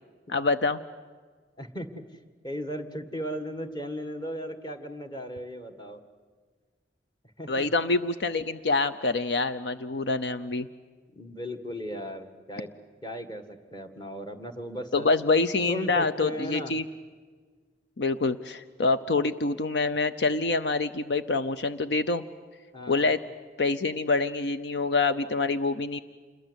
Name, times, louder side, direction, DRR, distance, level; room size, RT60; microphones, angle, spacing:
voice 1, 0.3-0.8 7.5-10.7 14.9-16.8 18.0-22.2 22.9-23.2 23.6-26.0, left 3 dB, 70° left, 11 dB, 0.7 m, -26 dB
voice 2, 1.6-1.9 2.4-6.0 7.4-7.7 11.1-12.7 13.0-15.1 15.7-16.8 22.7-23.0, equal, 25° left, 7 dB, 1.9 m, -36 dB
28.0 x 22.0 x 8.2 m, 1.6 s
head